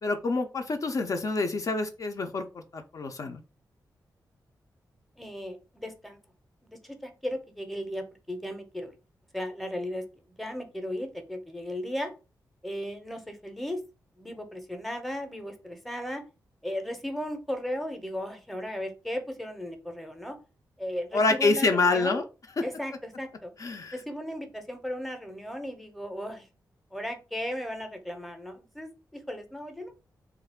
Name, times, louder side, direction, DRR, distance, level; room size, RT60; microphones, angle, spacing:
voice 1, 0.0-3.4 21.1-22.2 22.6-22.7 23.6-23.9, left 3 dB, 50° left, 5 dB, 0.4 m, -27 dB
voice 2, 5.2-6.2 6.7-8.9 9.3-10.0 10.4-12.1 12.6-13.8 14.2-16.2 16.6-20.4 20.8-22.2 22.6-23.5 23.9-26.5 26.9-30.0, equal, ahead, 6 dB, 0.6 m, -36 dB
3.1 x 2.4 x 3.5 m, 0.31 s
wide cardioid pair, 110°, 7 cm